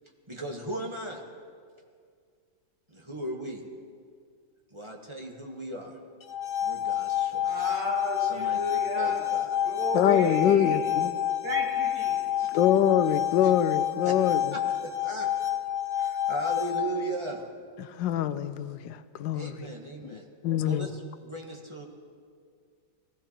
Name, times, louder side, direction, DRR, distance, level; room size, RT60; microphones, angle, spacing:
voice 1, 0.3-1.2 2.9-3.6 4.7-6.0 6.6-7.7 8.2-9.6 13.4-13.5 14.0-14.2 14.5-15.3 15.9-17.4 19.3-20.3 20.7-21.8, right 2 dB, 15° right, 0 dB, 1.3 m, -37 dB
sound 1, 6.2-17.2, left 11 dB, 50° left, 1.0 m, -28 dB
voice 2, 7.4-9.2 9.6-10.8 11.4-12.5, right 2 dB, 65° right, -3 dB, 3.3 m, -34 dB
voice 3, 9.9-11.2 12.5-14.5 17.8-19.7 20.4-20.9, left 10 dB, 75° left, 11 dB, 1.3 m, -25 dB
19.5 x 15.5 x 4.4 m, 2.1 s
omnidirectional pair, 2.0 m